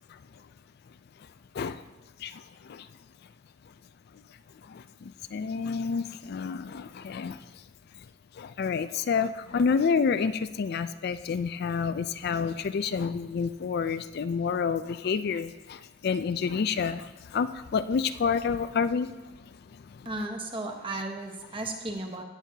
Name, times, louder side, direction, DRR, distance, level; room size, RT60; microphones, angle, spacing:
voice 1, 2.2-2.9 4.6-7.6 8.3-20.1, left 5 dB, 50° left, 12 dB, 0.4 m, -29 dB
voice 2, 20.0-22.2, right 2 dB, 25° right, 2 dB, 1.2 m, -35 dB
16.5 x 8.9 x 2.8 m, 1.2 s
head